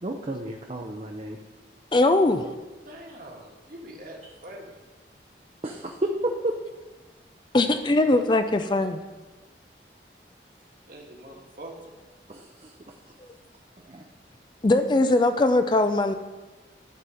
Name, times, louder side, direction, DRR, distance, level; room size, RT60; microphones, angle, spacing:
voice 1, 0.0-1.4 5.6-6.6 12.3-13.1 13.8-14.0, right 1 dB, 35° right, 2 dB, 0.6 m, -32 dB
voice 2, 1.9-2.4 7.5-9.0 14.6-16.1, left 2 dB, 25° left, 8 dB, 0.4 m, -21 dB
voice 3, 2.8-4.7 7.7-7.8 10.9-11.9, right 1 dB, 50° right, 0 dB, 1.6 m, -43 dB
11.0 x 4.3 x 6.3 m, 1.2 s
head